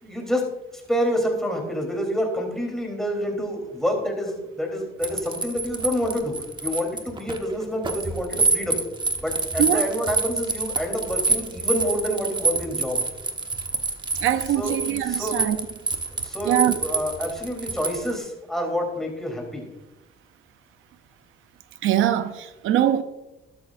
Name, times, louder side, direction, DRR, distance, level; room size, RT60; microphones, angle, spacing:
voice 1, 0.0-8.8 9.2-13.0 14.6-14.8 15.1-15.4 16.1-19.7, equal, ahead, 3.7 m, -28 dB
sound 1, 5.0-18.1, right 3 dB, 25° right, 1.2 m, -27 dB
voice 2, 14.2-15.6 16.5-16.8 21.8-23.0, right 11 dB, 85° right, 0.6 m, -22 dB
12.5 x 12.5 x 2.6 m
cardioid pair, 90°, 20 cm